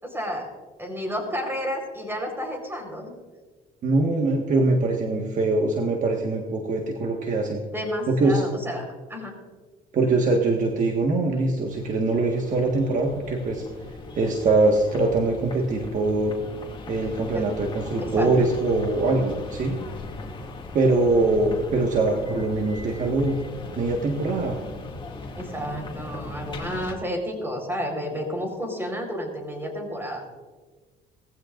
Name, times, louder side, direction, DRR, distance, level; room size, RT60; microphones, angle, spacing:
voice 1, 0.0-0.5 0.8-3.1 7.7-9.4 17.3-17.5 18.0-18.5 25.4-30.2, equal, 15° right, 3 dB, 4.4 m, -31 dB
voice 2, 3.8-7.6 8.1-8.4 9.9-13.6 14.1-16.4 16.9-19.8 20.7-23.3 23.8-24.6, right 2 dB, 50° right, 1 dB, 1.7 m, -23 dB
sound 1, 11.7-26.9, left 2 dB, 30° left, 2.5 m, -39 dB
19.0 x 15.5 x 2.6 m, 1.3 s
cardioid pair, 110°, 17 cm